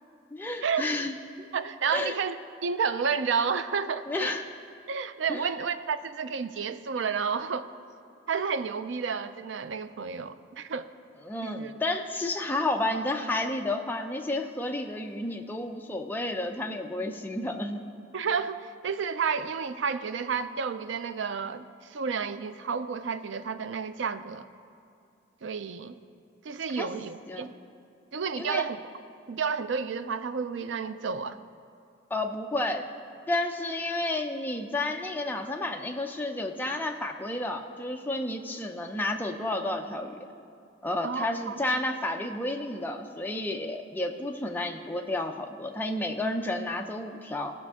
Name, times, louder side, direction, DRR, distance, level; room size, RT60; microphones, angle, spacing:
voice 1, 0.3-1.5 1.9-2.2 4.1-4.4 5.3-5.5 11.2-17.8 26.7-26.9 27.3-27.5 28.4-28.6 32.1-32.9 33.3-40.2 40.8-47.5, left 2 dB, 10° left, 3 dB, 0.5 m, -31 dB
voice 2, 1.5-2.4 2.6-4.1 4.9-7.7 8.3-10.9 11.4-11.7 18.1-24.5 25.4-26.0 26.4-27.5 28.1-28.8 29.3-31.4 41.0-41.6, right 6 dB, 70° right, 12 dB, 0.4 m, -31 dB
17.5 x 6.0 x 3.6 m, 2.5 s
head